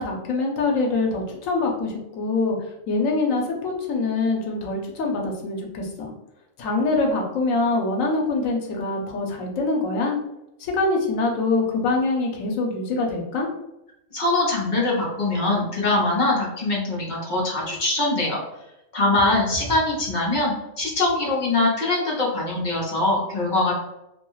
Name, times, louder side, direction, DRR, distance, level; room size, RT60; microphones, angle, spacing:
voice 1, 0.0-2.6 2.9-6.1 6.6-10.2 10.6-13.5, left 3 dB, 90° left, 1 dB, 1.0 m, -24 dB
voice 2, 14.1-18.4 18.9-23.7, left 2 dB, 40° left, -4 dB, 0.9 m, -23 dB
2.6 x 2.3 x 3.0 m, 0.88 s
omnidirectional pair, 1.3 m